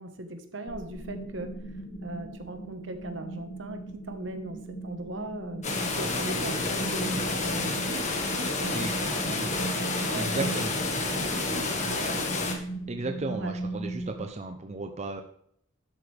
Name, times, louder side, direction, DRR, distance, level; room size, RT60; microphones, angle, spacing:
voice 1, 0.0-1.5 2.0-9.4 10.0-10.6 11.1-12.5 13.3-13.5, right 1 dB, 70° right, 7 dB, 1.3 m, -39 dB
sound 1, 0.6-14.3, right 2 dB, 60° left, 1.5 m, -39 dB
sound 2, 5.6-12.5, left 3 dB, 35° left, 1.5 m, -29 dB
voice 2, 10.1-10.7 12.9-15.2, right 3 dB, 35° right, 6 dB, 0.7 m, -34 dB
11.5 x 7.9 x 3.4 m, 0.68 s
head